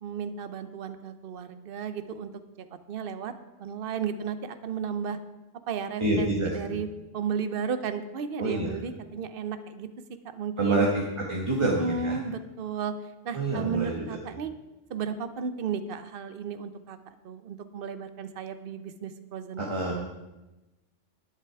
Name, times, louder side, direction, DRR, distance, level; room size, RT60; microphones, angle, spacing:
voice 1, 0.0-2.3 2.6-3.3 3.6-5.2 5.7-6.9 7.1-9.9 10.2-10.9 11.6-12.9 13.2-14.5 14.9-17.0 17.2-19.6 19.9-20.0, right 6 dB, 55° right, 11 dB, 0.9 m, -34 dB
voice 2, 6.0-6.8 8.4-8.7 10.6-12.2 13.3-14.2 19.6-20.0, right 2 dB, 25° right, -2 dB, 1.4 m, -27 dB
11.0 x 10.0 x 4.7 m, 1.0 s
omnidirectional pair, 1.3 m